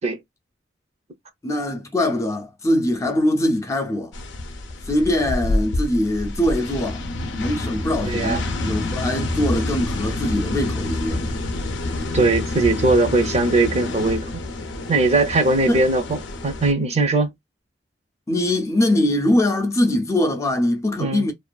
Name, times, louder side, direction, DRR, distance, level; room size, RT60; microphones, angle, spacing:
voice 1, 1.4-4.1 4.9-7.0 7.4-11.2 15.7-15.8 18.3-21.3, left 1 dB, 15° left, 0.4 m, -22 dB
sound 1, 4.1-16.7, left 2 dB, 80° left, 0.5 m, -27 dB
voice 2, 8.1-8.4 12.1-14.3 14.9-16.2 16.4-17.3 21.0-21.3, right 2 dB, 35° right, 0.5 m, -19 dB
2.5 x 2.3 x 2.3 m
head